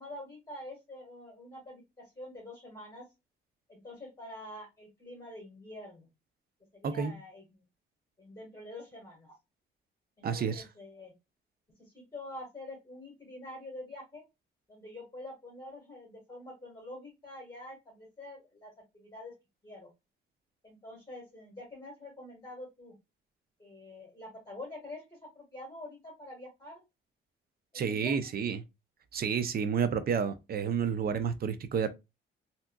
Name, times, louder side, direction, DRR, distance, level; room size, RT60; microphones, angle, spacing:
voice 1, 0.0-3.0 3.7-6.1 6.7-7.6 8.2-9.3 10.2-11.1 11.8-14.2 14.7-19.3 19.6-19.9 20.6-22.9 23.6-26.8 27.7-28.3, left 1 dB, 15° left, 1.5 m, -46 dB
voice 2, 10.2-10.6 27.7-28.6 29.1-31.9, right 6 dB, 50° right, 0.5 m, -30 dB
3.4 x 2.8 x 2.2 m
cardioid pair, 90°, 20 cm